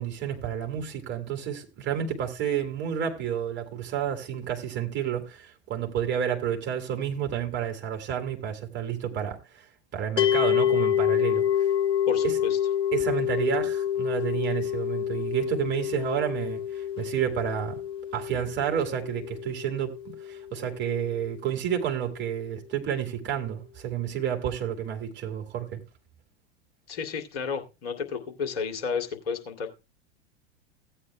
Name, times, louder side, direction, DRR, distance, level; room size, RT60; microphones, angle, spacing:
voice 1, 0.0-9.7 9.9-11.4 12.2-12.4 12.9-17.8 18.1-25.8, right 9 dB, 30° right, 2.6 m, -30 dB
sound 1, 10.2-21.3, left 10 dB, 15° left, 0.4 m, -28 dB
voice 2, 12.1-12.6 26.9-29.7, left 6 dB, 60° left, 2.5 m, -32 dB
16.5 x 9.0 x 2.2 m
figure-of-eight pair, 90°, 34 cm